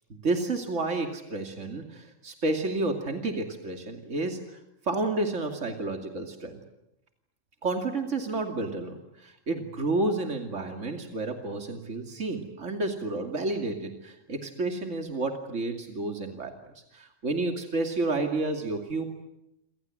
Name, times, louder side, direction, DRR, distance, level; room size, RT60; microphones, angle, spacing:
voice 1, 0.1-6.6 7.6-16.5 16.9-19.0, right 2 dB, 70° right, 4 dB, 2.9 m, -30 dB
28.5 x 25.5 x 7.8 m, 0.84 s
omnidirectional pair, 1.3 m